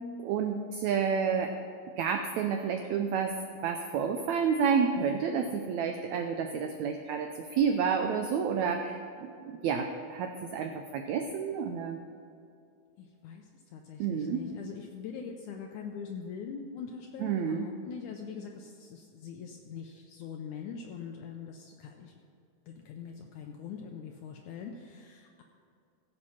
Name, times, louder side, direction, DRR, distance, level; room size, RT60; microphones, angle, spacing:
voice 1, 0.2-1.5 2.0-3.3 3.6-9.0 9.4-12.0 14.0-14.4 17.2-17.7, right 6 dB, 75° right, 5 dB, 1.7 m, -30 dB
voice 2, 13.0-22.2 22.7-25.4, left 6 dB, 75° left, 2 dB, 2.0 m, -43 dB
16.0 x 7.6 x 5.8 m, 2.5 s
omnidirectional pair, 3.8 m